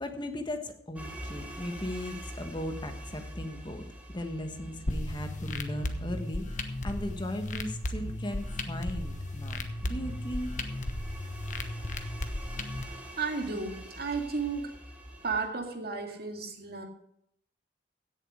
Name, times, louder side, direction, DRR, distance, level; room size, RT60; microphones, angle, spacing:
voice 1, 0.0-10.5, left 1 dB, 25° left, 6 dB, 1.4 m, -37 dB
sound 1, 1.0-15.5, equal, 10° right, 2.6 m, -45 dB
sound 2, 4.9-12.8, left 1 dB, 45° left, 1.2 m, -35 dB
voice 2, 12.9-14.7 15.2-16.9, right 4 dB, 60° right, 4 dB, 2.2 m, -33 dB
16.5 x 7.3 x 5.0 m, 0.72 s
head